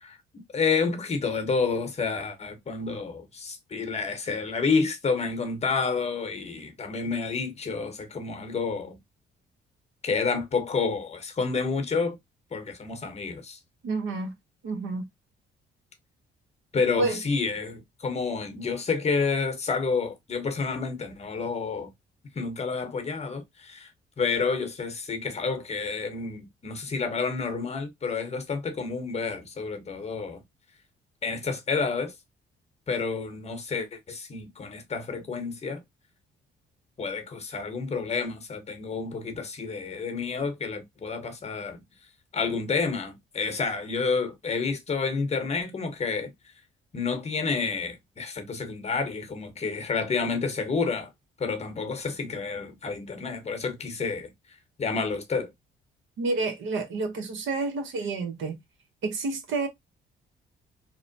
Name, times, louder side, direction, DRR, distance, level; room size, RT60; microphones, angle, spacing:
voice 1, 0.0-9.0 10.0-12.2 12.5-13.6 16.7-21.9 22.3-23.9 24.2-30.4 31.2-32.1 32.9-35.8 37.0-41.8 42.3-46.3 46.9-51.1 51.4-54.3 54.8-55.5, left 4 dB, 35° left, 0.8 m, -29 dB
voice 2, 13.8-14.3 14.6-15.1 17.0-17.2 56.2-58.6 59.0-59.7, right 3 dB, 75° right, 0.9 m, -29 dB
2.9 x 2.1 x 2.5 m
cardioid pair, 90°, 20 cm